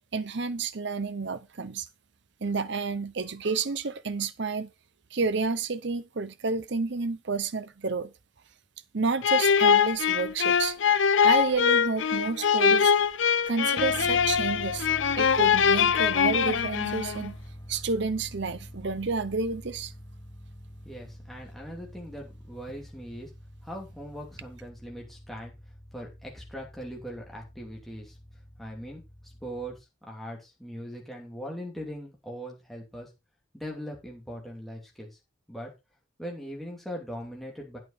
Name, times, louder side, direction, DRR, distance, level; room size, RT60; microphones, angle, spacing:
voice 1, 0.1-1.9 2.4-4.7 5.1-8.1 8.9-10.8 11.2-12.9 13.5-14.9 15.2-17.4 17.7-19.9, right 4 dB, 55° right, 0.7 m, -30 dB
sound 1, 9.2-17.3, left 7 dB, 65° left, 0.6 m, -23 dB
sound 2, 13.8-29.8, equal, 20° left, 0.9 m, -45 dB
voice 2, 20.8-23.3 23.6-25.5 25.9-28.1 28.6-33.1 33.5-35.1 35.5-35.7 36.2-37.8, equal, ahead, 2.8 m, -40 dB
9.0 x 8.7 x 4.1 m
head